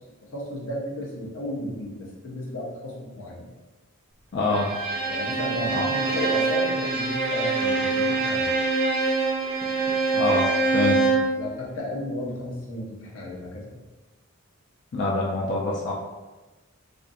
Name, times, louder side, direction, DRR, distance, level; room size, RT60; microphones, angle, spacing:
voice 1, 0.3-3.5 5.1-8.5 10.8-10.9 11.3-13.8, left 1 dB, 80° left, -3 dB, 0.7 m, -33 dB
voice 2, 4.3-4.7 5.6-5.9 10.1-10.9 14.9-15.9, left 2 dB, 50° left, -3 dB, 0.3 m, -26 dB
Bowed string instrument, 4.5-11.3, right 3 dB, 45° right, 0.5 m, -24 dB
2.5 x 2.3 x 2.5 m, 1.1 s
head